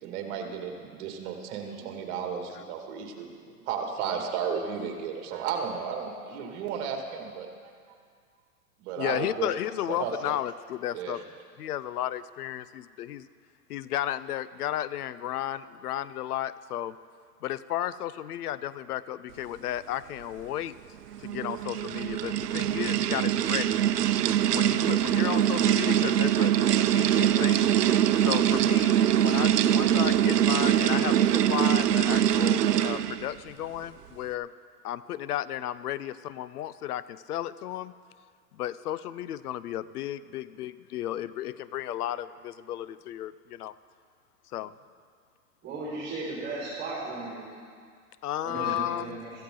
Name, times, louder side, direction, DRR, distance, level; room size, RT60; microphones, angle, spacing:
voice 1, 0.0-7.5 8.8-9.5 9.9-10.3 10.9-11.2, right 7 dB, 45° right, 3 dB, 2.2 m, -34 dB
voice 2, 8.9-11.2 11.6-13.3 13.7-17.0 17.4-20.7 21.2-23.7 24.5-27.7 28.2-34.5 34.8-37.9 38.5-43.7 44.5-44.7 48.2-49.2, left 12 dB, 75° left, 16 dB, 0.7 m, -33 dB
sound 1, 21.1-33.3, right 10 dB, 90° right, 0.7 m, -23 dB
voice 3, 45.6-47.4 48.4-49.3, right 3 dB, 20° right, -7 dB, 4.7 m, -35 dB
16.5 x 14.5 x 3.8 m, 2.1 s
hypercardioid pair, 135°, 46 cm